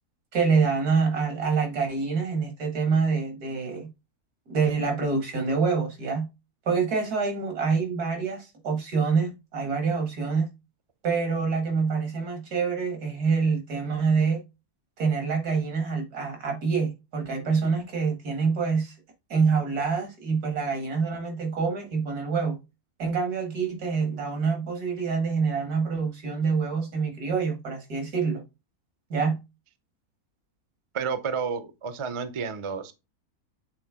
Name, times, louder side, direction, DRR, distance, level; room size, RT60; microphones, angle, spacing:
voice 1, 0.3-3.9 4.5-6.3 6.7-10.5 11.0-14.4 15.0-18.9 19.3-22.6 23.0-28.4 29.1-29.4, right 5 dB, 85° right, 2.4 m, -26 dB
voice 2, 30.9-32.9, right 6 dB, 40° right, 0.4 m, -31 dB
7.5 x 3.6 x 3.6 m
omnidirectional pair, 1.6 m